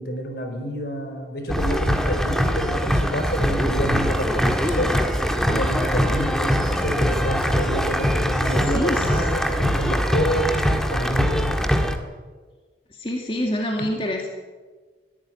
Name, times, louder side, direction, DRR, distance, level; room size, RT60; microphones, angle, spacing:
voice 1, 0.0-5.0 5.4-11.6 13.8-13.9, equal, 60° left, 5 dB, 4.7 m, -28 dB
sound 1, 1.5-12.0, equal, 5° left, 1.6 m, -22 dB
voice 2, 8.7-9.2 13.0-14.3, equal, 30° left, 1 dB, 2.2 m, -26 dB
21.5 x 15.0 x 9.2 m, 1.4 s
head